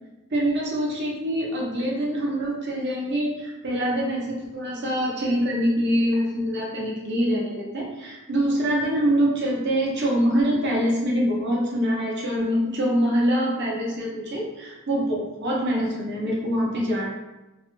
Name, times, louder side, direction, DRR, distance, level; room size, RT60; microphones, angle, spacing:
voice 1, 0.3-17.1, equal, 50° right, -3 dB, 0.7 m, -24 dB
3.2 x 2.2 x 3.0 m, 1.0 s
head